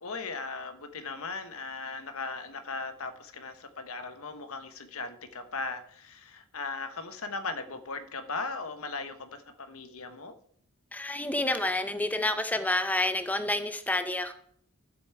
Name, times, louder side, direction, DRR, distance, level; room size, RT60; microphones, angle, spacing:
voice 1, 0.0-10.4, left 3 dB, 70° left, 9 dB, 1.1 m, -38 dB
voice 2, 10.9-14.3, left 1 dB, 5° left, 9 dB, 0.6 m, -29 dB
12.5 x 7.9 x 4.7 m, 0.64 s
head